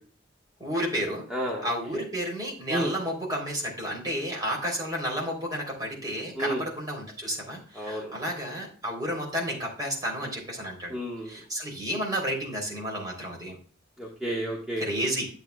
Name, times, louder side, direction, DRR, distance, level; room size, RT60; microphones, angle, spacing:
voice 1, 0.6-1.3 1.6-11.0 11.2-13.6 14.8-15.3, equal, 20° right, -1 dB, 3.2 m, -31 dB
voice 2, 1.3-2.0 2.7-2.9 6.4-6.6 7.7-8.1 10.9-11.4 14.0-14.9, right 1 dB, 5° right, -4 dB, 1.3 m, -31 dB
10.5 x 7.9 x 2.3 m, 0.42 s
head